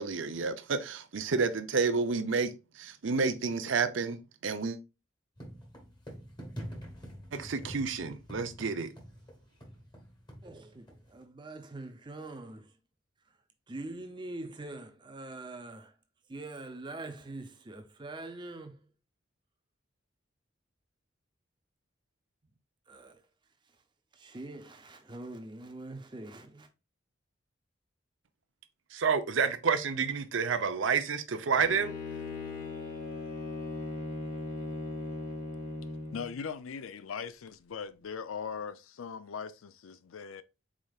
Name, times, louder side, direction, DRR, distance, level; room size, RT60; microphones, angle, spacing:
voice 1, 0.0-4.8 7.3-8.9 28.9-31.9, right 5 dB, 70° right, 0.6 m, -30 dB
sound 1, 5.4-11.2, equal, 20° left, 1.1 m, -46 dB
voice 2, 10.4-12.7 13.7-15.9 16.3-18.9 22.9-23.2 24.1-26.7, right 2 dB, 25° right, 0.6 m, -44 dB
Bowed string instrument, 31.6-36.3, left 3 dB, 40° left, 1.5 m, -38 dB
voice 3, 36.1-40.4, left 6 dB, 85° left, 0.4 m, -40 dB
4.9 x 4.2 x 2.4 m
head